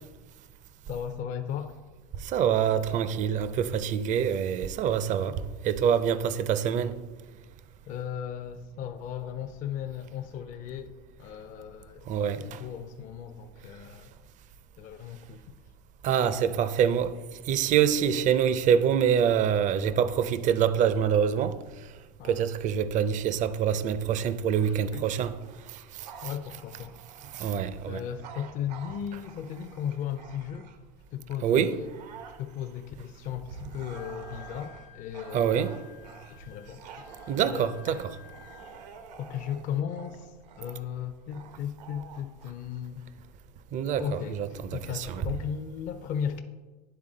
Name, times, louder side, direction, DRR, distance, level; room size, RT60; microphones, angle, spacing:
voice 1, 0.9-1.8 7.9-10.9 11.2-14.1 14.8-15.6 22.2-22.4 24.9-25.0 26.2-27.0 27.9-30.7 31.1-31.9 32.4-35.7 36.3-37.1 37.4-38.0 39.2-43.0 44.0-46.4, left 9 dB, 40° left, 0.5 m, -36 dB
voice 2, 2.2-7.0 12.1-12.6 16.0-17.2 17.5-21.6 22.3-25.4 27.3-28.0 31.4-31.8 35.3-35.8 37.3-38.1 43.7-45.2, right 8 dB, 35° right, 0.4 m, -25 dB
Bark / Growling, 24.5-31.0 31.5-43.4, right 6 dB, 80° right, 0.8 m, -49 dB
Wind instrument woodwind instrument, 33.7-39.0, left 14 dB, 70° left, 0.8 m, -54 dB
10.0 x 3.5 x 3.8 m
hypercardioid pair, 100°, 21 cm